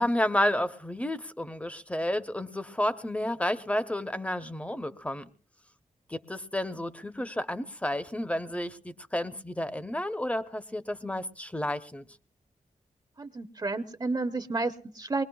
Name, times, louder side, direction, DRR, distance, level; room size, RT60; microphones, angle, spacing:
voice 1, 0.0-5.3 6.1-12.1, left 1 dB, 10° left, 0.8 m, -31 dB
voice 2, 13.2-15.2, right 3 dB, 30° right, 0.8 m, -31 dB
23.5 x 21.0 x 2.3 m
cardioid pair, 65°, 13 cm